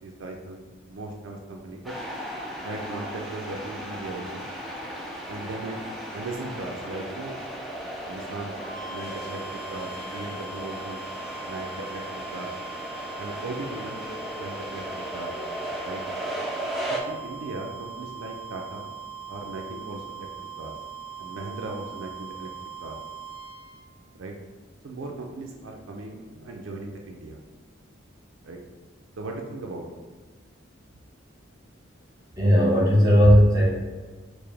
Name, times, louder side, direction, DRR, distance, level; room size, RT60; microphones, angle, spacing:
voice 1, 0.0-2.0 2.6-4.5 5.3-5.8 6.1-7.4 8.1-8.6 8.9-11.0 11.4-12.5 13.2-14.1 14.3-15.3 15.8-16.0 16.9-18.9 19.3-20.8 21.2-23.0 24.1-24.4 24.8-27.4 28.4-28.6 29.2-29.9, right 2 dB, 75° right, 1 dB, 0.4 m, -37 dB
sound 1, 1.8-17.0, equal, ahead, 0.3 m, -36 dB
sound 2, 8.5-23.8, right 5 dB, 30° left, 1.0 m, -41 dB
voice 2, 32.4-33.7, equal, 20° right, -4 dB, 0.9 m, -16 dB
4.7 x 2.1 x 3.3 m, 1.4 s
head